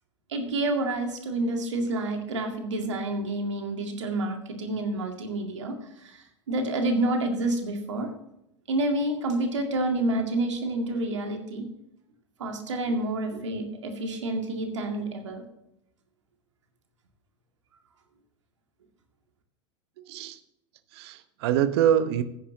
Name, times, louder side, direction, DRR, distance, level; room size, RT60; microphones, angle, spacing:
voice 1, 0.3-8.1 8.7-11.7 12.4-15.4, right 2 dB, 80° right, 4 dB, 2.1 m, -29 dB
voice 2, 20.0-20.4 20.9-22.2, right 10 dB, 60° right, 12 dB, 0.9 m, -25 dB
14.5 x 9.9 x 2.8 m, 0.82 s
hypercardioid pair, 90°, 15 cm